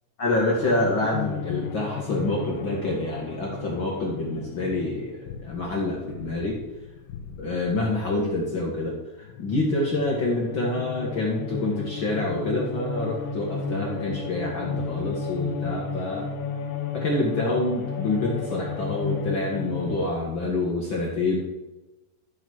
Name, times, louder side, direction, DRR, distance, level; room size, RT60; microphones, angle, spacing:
voice 1, 0.2-6.6 7.4-16.3 16.9-21.4, left 2 dB, 55° left, -2 dB, 1.4 m, -27 dB
sound 1, 0.7-8.9 9.2-20.1, left 5 dB, 80° left, 3.3 m, -33 dB
13.5 x 5.2 x 6.3 m, 1.0 s
omnidirectional pair, 4.8 m